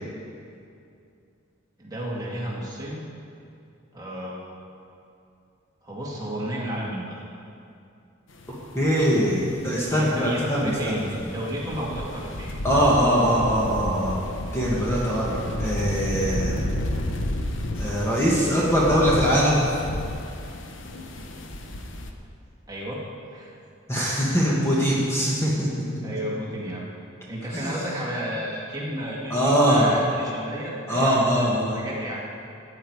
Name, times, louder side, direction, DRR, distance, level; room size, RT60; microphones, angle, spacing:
voice 1, 1.8-3.0 3.9-4.4 5.8-7.2 9.9-12.5 22.7-23.0 23.3-23.5 26.0-26.9 27.3-32.2, equal, 20° right, -5 dB, 2.0 m, -32 dB
sound 1, 8.4-22.1, left 1 dB, 65° left, 0.8 m, -32 dB
voice 2, 8.5-11.0 12.6-16.6 17.8-19.7 23.9-25.7 27.5-27.8 29.3-29.9 30.9-31.8, equal, 15° left, -6 dB, 1.5 m, -22 dB
14.0 x 8.9 x 4.7 m, 2.5 s
head